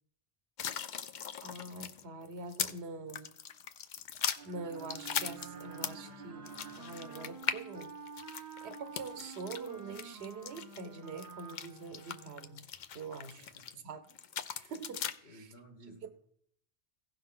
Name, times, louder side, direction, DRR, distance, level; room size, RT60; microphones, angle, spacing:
sound 1, 0.6-2.8 3.1-6.1 6.5-13.7 14.1-15.2, left 8 dB, 55° left, 0.6 m, -39 dB
voice 1, 1.4-3.4 4.4-6.5 6.8-7.9 8.4-12.6 12.9-13.5 13.8-14.0 14.6-15.5 16.0-16.1, right 3 dB, 80° right, 1.1 m, -44 dB
sound 2, 4.4-8.3, right 6 dB, 60° right, 0.8 m, -50 dB
Wind instrument woodwind instrument, 4.8-12.7, right 4 dB, 25° right, 0.5 m, -50 dB
voice 2, 13.4-13.8 15.2-16.1, right 1 dB, 80° left, 1.4 m, -55 dB
16.0 x 5.6 x 3.7 m
omnidirectional pair, 1.1 m